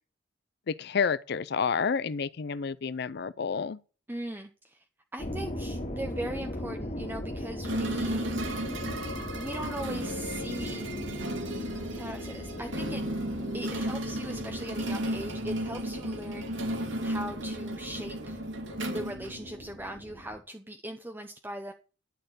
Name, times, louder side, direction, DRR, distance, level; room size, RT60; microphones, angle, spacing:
voice 1, 0.7-3.8, left 6 dB, 55° left, 0.5 m, -29 dB
voice 2, 4.1-4.8 5.1-8.2 9.3-11.0 11.9-13.0 13.5-18.4 18.9-21.7, right 1 dB, 10° right, 0.7 m, -39 dB
sound 1, 5.2-20.4, left 1 dB, 40° left, 2.4 m, -40 dB
sound 2, 7.6-19.9, right 1 dB, 70° right, 2.2 m, -34 dB
11.5 x 4.4 x 7.9 m
head